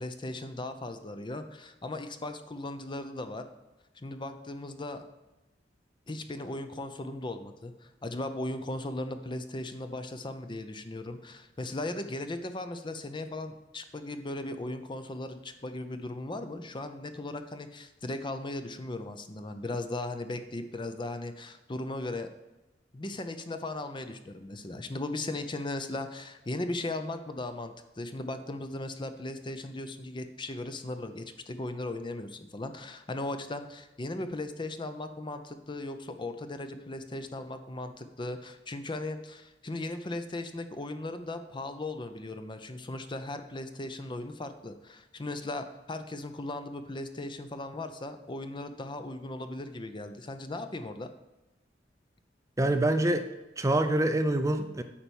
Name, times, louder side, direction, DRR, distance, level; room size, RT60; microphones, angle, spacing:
voice 1, 0.0-3.4 4.0-5.1 6.1-22.3 22.9-51.1, left 2 dB, 25° left, 8 dB, 0.6 m, -37 dB
voice 2, 52.6-53.3 53.6-54.8, right 1 dB, 20° right, 8 dB, 0.5 m, -25 dB
8.6 x 4.6 x 7.1 m, 1.0 s
head